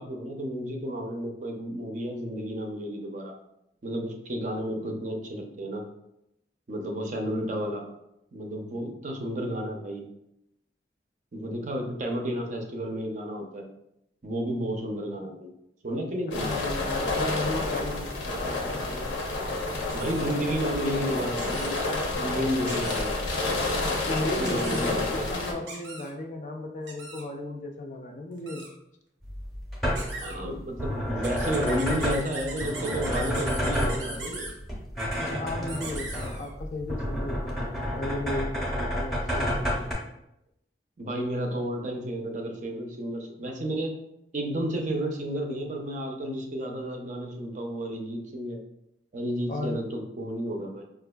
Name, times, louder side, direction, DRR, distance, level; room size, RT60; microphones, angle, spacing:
voice 1, 0.0-3.3 3.8-5.8 6.7-7.8 8.3-10.1 11.3-13.7 14.2-15.5 15.8-16.5 19.9-21.8 22.2-23.2 24.4-25.3 30.1-34.5 41.0-43.9 44.3-48.6 49.1-50.8, equal, 45° right, 2 dB, 0.5 m, -32 dB
sound 1, 16.3-25.5, left 2 dB, 80° left, 0.7 m, -29 dB
voice 2, 16.3-19.2 23.8-28.7 35.2-39.5 49.5-49.8, left 2 dB, 40° left, 3 dB, 0.4 m, -35 dB
sound 2, 19.9-20.3 21.4-21.7 22.7-23.1 24.4-24.9 25.7-26.1 26.9-27.2 28.4-28.7 29.9-30.4 31.2-34.5 35.7-36.5, right 2 dB, 90° right, 0.7 m, -39 dB
sound 3, 29.2-39.9, equal, ahead, 0.7 m, -30 dB
5.0 x 2.3 x 2.3 m, 0.82 s
head